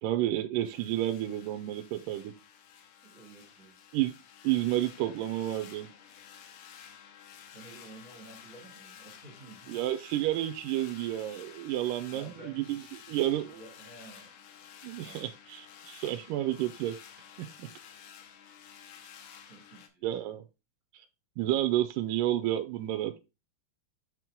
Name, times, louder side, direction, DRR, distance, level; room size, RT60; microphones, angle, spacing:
voice 1, 0.0-2.3 3.9-4.1 4.4-5.9 9.7-13.6 14.8-17.0 17.4-17.7 20.0-20.4 20.9-21.1 21.4-23.2, right 13 dB, 85° right, 9 dB, 2.2 m, -31 dB
sound 1, 0.6-19.9, left 8 dB, 80° left, 2.6 m, -52 dB
voice 2, 3.0-3.9 7.5-9.7 12.1-14.3 14.9-15.2 19.5-20.0, right 2 dB, 25° right, -1 dB, 2.1 m, -52 dB
8.1 x 4.6 x 3.6 m, 0.27 s
omnidirectional pair, 3.9 m